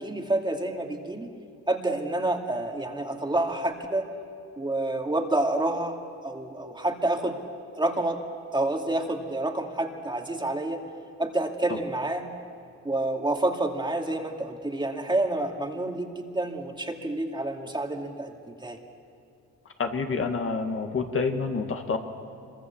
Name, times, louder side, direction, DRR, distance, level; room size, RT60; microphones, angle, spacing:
voice 1, 0.0-1.3 1.7-4.1 4.6-6.0 6.2-7.4 7.8-8.2 8.5-10.8 11.2-12.3 12.8-18.8, right 2 dB, 15° right, 2 dB, 2.4 m, -28 dB
voice 2, 19.8-22.0, left 4 dB, 45° left, 4 dB, 2.0 m, -28 dB
25.5 x 23.5 x 7.3 m, 2.6 s
cardioid pair, 90°, 30 cm